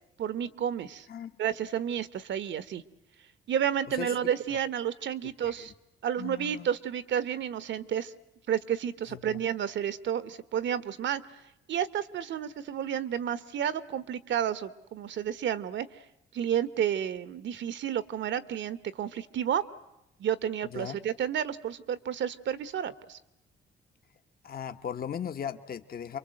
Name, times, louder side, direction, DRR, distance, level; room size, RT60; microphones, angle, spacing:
voice 1, 0.2-1.1 1.4-2.8 3.5-5.7 6.0-8.1 8.5-11.2 11.7-15.9 16.3-19.6 20.2-23.2, right 9 dB, 70° right, 14 dB, 1.4 m, -31 dB
voice 2, 3.9-4.2 4.5-4.6 5.2-5.7 6.2-6.7 9.1-9.4 20.6-21.0 24.4-26.2, left 8 dB, 50° left, 7 dB, 1.4 m, -38 dB
28.5 x 24.0 x 7.9 m, 0.89 s
cardioid pair, 90°, 20 cm